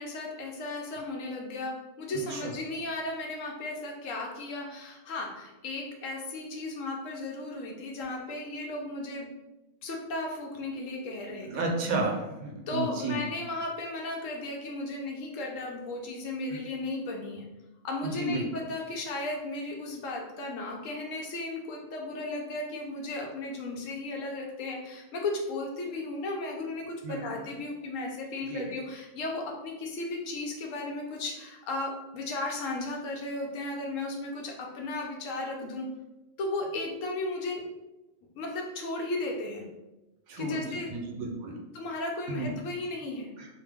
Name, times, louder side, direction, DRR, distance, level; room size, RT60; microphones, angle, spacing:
voice 1, 0.0-9.3 9.8-11.6 12.7-17.4 17.8-35.9 36.4-37.6 38.4-39.6 40.4-40.9 41.7-43.3, left 2 dB, 70° left, 0 dB, 0.9 m, -35 dB
voice 2, 2.1-2.5 11.4-13.2 16.5-16.6 18.0-18.4 27.0-27.3 28.4-28.7 40.3-41.5 42.3-42.5 43.4-43.5, right 2 dB, 75° right, 0 dB, 1.0 m, -32 dB
2.9 x 2.0 x 3.4 m, 1.0 s
omnidirectional pair, 1.5 m